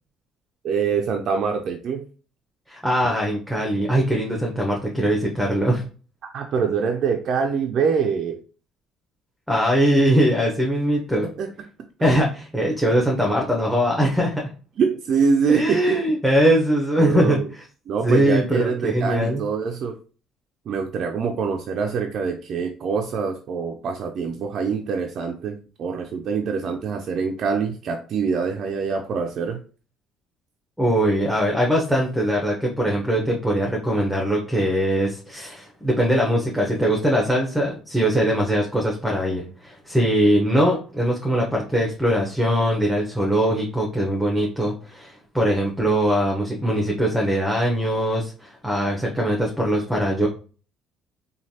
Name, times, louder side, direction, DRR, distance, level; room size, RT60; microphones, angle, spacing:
voice 1, 0.6-2.1 6.3-8.4 11.2-11.5 14.8-16.0 17.0-17.5 17.9-20.0 20.7-29.6, right 5 dB, 60° right, 3 dB, 0.4 m, -24 dB
voice 2, 2.7-5.8 9.5-11.3 12.0-14.5 15.5-17.6 18.0-19.4 30.8-50.3, equal, ahead, -1 dB, 0.8 m, -21 dB
3.1 x 2.2 x 2.7 m, 0.38 s
supercardioid pair, 70°, 0 cm